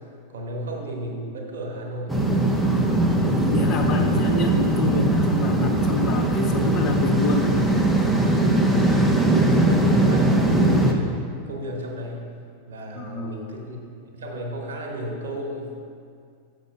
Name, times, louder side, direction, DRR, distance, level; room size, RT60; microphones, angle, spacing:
voice 1, 0.3-2.3 9.6-12.2 12.7-13.8 14.1-15.8, right 1 dB, 65° right, 0 dB, 1.3 m, -33 dB
sound 1, 2.1-10.9, right 1 dB, ahead, 0.7 m, -20 dB
voice 2, 3.3-7.5 12.9-13.4, left 2 dB, 35° left, 2 dB, 0.9 m, -27 dB
7.2 x 5.4 x 5.7 m, 2.3 s
figure-of-eight pair, 90°, 0 cm